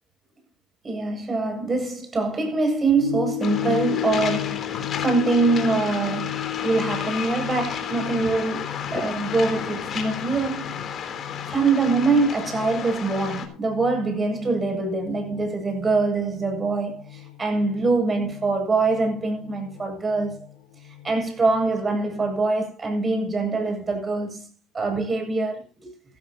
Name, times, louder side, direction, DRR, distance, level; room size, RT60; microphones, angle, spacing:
voice 1, 0.8-10.7 11.5-20.5 21.0-24.5 24.7-25.9, right 3 dB, 30° right, 7.5 m, -24 dB
sound 1, 3.0-22.4, left 17 dB, 85° left, 3.1 m, -35 dB
Waves surf, 3.4-13.5, left 7 dB, 50° left, 3.5 m, -32 dB
16.0 x 14.0 x 3.0 m
supercardioid pair, 90°, 0 cm